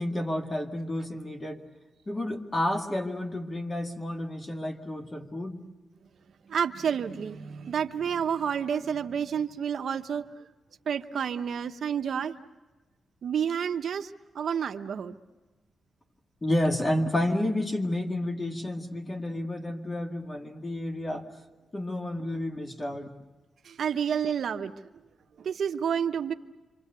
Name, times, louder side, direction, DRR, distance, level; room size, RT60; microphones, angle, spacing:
voice 1, 0.0-1.6 2.1-5.6 16.4-21.3 21.7-23.1, left 1 dB, 25° left, 3 dB, 2.1 m, -30 dB
voice 2, 6.5-10.5 10.9-12.4 13.2-15.1 23.6-24.7 25.4-26.3, right 7 dB, 65° right, 8 dB, 0.9 m, -30 dB
27.5 x 26.0 x 6.8 m, 1.2 s
wide cardioid pair, 140°, 0 cm